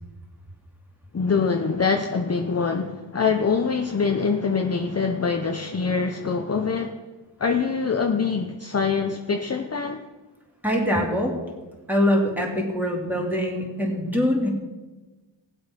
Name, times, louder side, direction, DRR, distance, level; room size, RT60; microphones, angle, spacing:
voice 1, 1.1-7.0 7.4-10.0, left 5 dB, 35° left, 4 dB, 0.9 m, -24 dB
voice 2, 10.6-11.3 11.9-14.5, equal, 5° right, -2 dB, 3.3 m, -23 dB
18.5 x 7.9 x 5.3 m, 1.2 s
wide cardioid pair, 95°, 46 cm